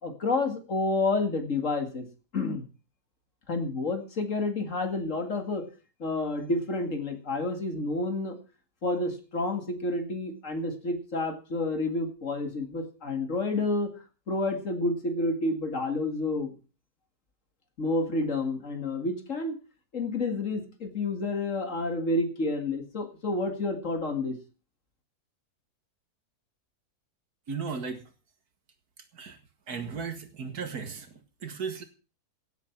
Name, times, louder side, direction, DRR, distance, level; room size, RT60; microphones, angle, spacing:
voice 1, 0.0-2.1 2.3-2.6 3.5-5.7 6.0-8.4 8.8-13.9 14.3-16.5 17.8-19.6 19.9-24.4, left 2 dB, 50° left, 6 dB, 2.4 m, -29 dB
voice 2, 27.5-28.0 29.1-29.4 29.7-31.8, right 5 dB, 70° right, 8 dB, 2.2 m, -36 dB
16.5 x 8.2 x 5.9 m, 0.35 s
omnidirectional pair, 1.7 m